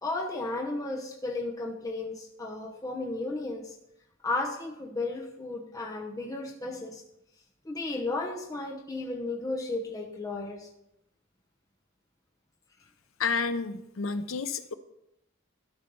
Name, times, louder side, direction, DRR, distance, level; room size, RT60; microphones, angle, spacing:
voice 1, 0.0-3.8 4.2-7.0 7.6-10.7, left 2 dB, 15° left, 0 dB, 0.9 m, -34 dB
voice 2, 13.2-14.7, left 4 dB, 80° left, 10 dB, 0.7 m, -30 dB
12.5 x 4.5 x 5.4 m, 0.82 s
head